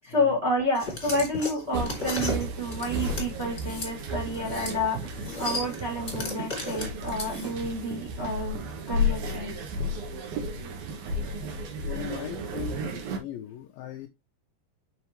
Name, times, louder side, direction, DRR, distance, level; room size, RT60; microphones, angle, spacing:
voice 1, 0.0-8.6 8.9-9.5, left 1 dB, 25° right, 1.7 m, -29 dB
sound 1, 0.7-3.9 4.3-4.8 5.0-7.7, left 2 dB, 20° left, 2.1 m, -35 dB
sound 2, 1.7-13.2, left 1 dB, 70° right, 3.0 m, -33 dB
voice 2, 11.9-14.1, left 12 dB, 80° left, 2.2 m, -39 dB
6.9 x 5.6 x 3.0 m
omnidirectional pair, 4.6 m